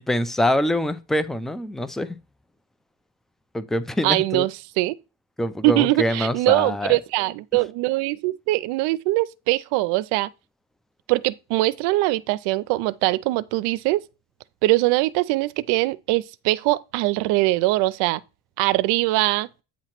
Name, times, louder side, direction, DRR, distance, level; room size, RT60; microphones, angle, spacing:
voice 1, 0.0-2.2 3.5-4.5 5.4-7.0, left 1 dB, ahead, 0.4 m, -24 dB
voice 2, 4.0-5.0 5.6-10.3 11.1-14.0 14.6-18.2 18.6-19.5, right 19 dB, 90° right, 0.6 m, -22 dB
8.7 x 3.0 x 5.8 m
cardioid pair, 115°, 38 cm